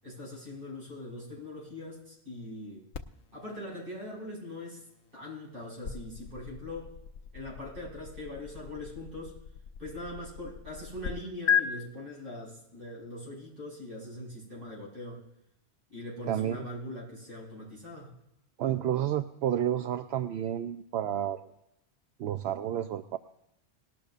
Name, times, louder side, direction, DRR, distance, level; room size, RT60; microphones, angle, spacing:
voice 1, 0.0-2.9 3.3-4.8 5.1-6.9 7.3-9.4 9.8-15.2 15.9-18.1, left 1 dB, 55° right, -5 dB, 6.1 m, -41 dB
sound 1, 2.9-11.1 11.5-11.6, left 8 dB, 85° left, 1.0 m, -36 dB
voice 2, 16.3-16.7 18.6-21.4 22.2-23.2, right 10 dB, 70° right, 9 dB, 0.8 m, -30 dB
19.0 x 12.0 x 2.5 m, 0.82 s
omnidirectional pair, 1.1 m